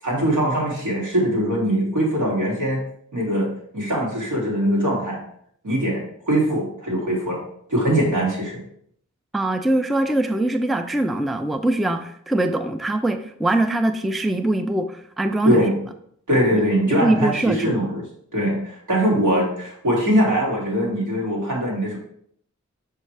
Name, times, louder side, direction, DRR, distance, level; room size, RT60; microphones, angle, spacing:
voice 1, 0.0-2.8 3.1-3.5 3.7-5.2 5.6-7.4 7.7-8.6 15.4-15.7 16.3-18.0 18.3-22.0, equal, 70° right, -3 dB, 2.6 m, -22 dB
voice 2, 9.3-15.6 16.5-16.6 16.9-17.7, right 1 dB, ahead, 8 dB, 0.4 m, -22 dB
6.2 x 5.5 x 3.3 m, 0.67 s
wide cardioid pair, 55°, 31 cm